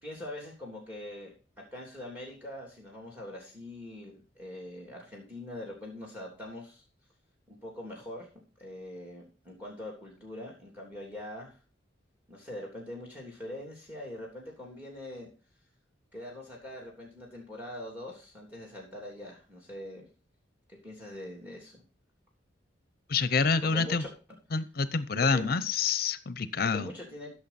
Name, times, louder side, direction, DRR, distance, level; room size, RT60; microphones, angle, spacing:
voice 1, 0.0-6.8 7.5-8.3 8.6-11.6 12.3-15.3 16.1-20.0 20.7-21.8 23.6-24.1 25.1-25.5 26.7-27.3, left 1 dB, 10° right, 0 dB, 3.1 m, -43 dB
voice 2, 23.1-24.0 24.5-26.9, left 5 dB, 50° left, 15 dB, 0.7 m, -27 dB
14.5 x 6.6 x 4.2 m, 0.35 s
head